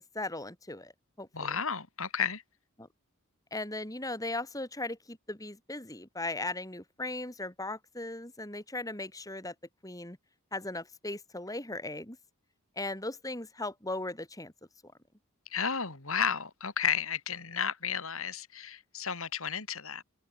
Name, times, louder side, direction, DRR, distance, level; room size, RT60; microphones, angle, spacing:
voice 1, 0.1-0.9 1.2-1.6 2.8-2.9 3.5-9.5 9.8-10.2 10.5-12.2 12.8-14.5, left 2 dB, 15° left, 4.6 m, -38 dB
voice 2, 1.3-2.4 15.5-20.0, left 7 dB, 70° left, 3.6 m, -32 dB
head